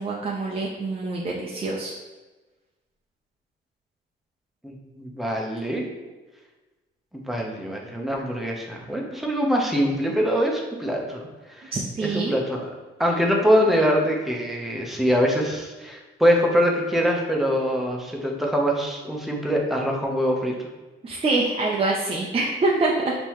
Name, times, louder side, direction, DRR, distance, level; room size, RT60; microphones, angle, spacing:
voice 1, 0.0-1.9 11.7-12.4 21.0-23.1, right 3 dB, 30° right, -3 dB, 0.6 m, -25 dB
voice 2, 4.6-5.8 7.1-11.7 12.0-12.7 13.0-20.5, equal, ahead, -1 dB, 0.9 m, -24 dB
5.4 x 3.0 x 3.1 m, 1.2 s
cardioid pair, 90°, 20 cm